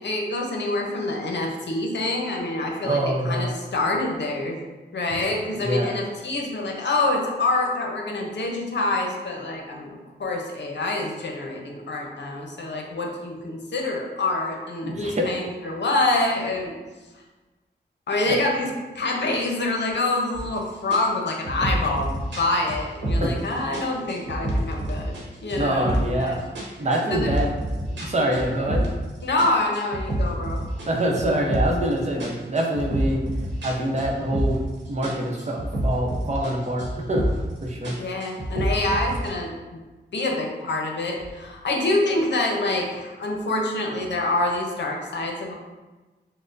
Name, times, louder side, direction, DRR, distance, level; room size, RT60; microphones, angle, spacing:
voice 1, 0.0-4.6 4.9-16.7 18.1-26.4 27.1-27.3 29.2-30.6 38.0-39.8 40.1-45.5, left 2 dB, 70° left, 0 dB, 0.7 m, -26 dB
voice 2, 2.8-3.5 5.6-5.9 14.8-15.3 23.2-23.3 25.6-26.4 26.8-27.5 28.0-28.9 30.9-33.2 33.6-34.6 34.9-37.2 37.6-37.9, right 1 dB, 40° right, -1 dB, 0.7 m, -25 dB
sound 1, 20.3-20.6 20.9-23.4 23.7-25.2 25.5-26.2 26.5-29.1 29.4-31.9 32.2-34.7 35.0-36.5 36.8-37.5 37.8-39.3, right 1 dB, 80° right, 1.0 m, -27 dB
6.3 x 2.1 x 2.5 m, 1.2 s
wide cardioid pair, 85°, 19 cm